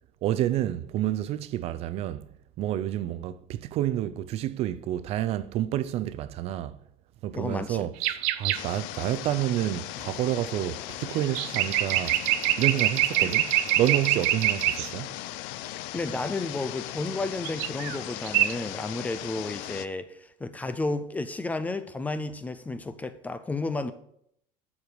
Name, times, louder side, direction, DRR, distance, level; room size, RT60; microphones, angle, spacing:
voice 1, 0.2-2.3 2.6-6.8 7.2-12.2 12.6-15.2, right 13 dB, 45° right, 0.5 m, -29 dB
voice 2, 7.3-7.9 12.1-12.2 13.2-13.4 15.9-23.9, left 3 dB, 10° left, 0.5 m, -32 dB
sound 1, 8.0-8.6 11.2-14.9 17.4-18.0 18.2-18.5, right 15 dB, 80° right, 0.7 m, -25 dB
sound 2, 8.5-19.9, left 14 dB, 80° left, 0.7 m, -38 dB
13.0 x 4.8 x 7.0 m
cardioid pair, 165°, 15 cm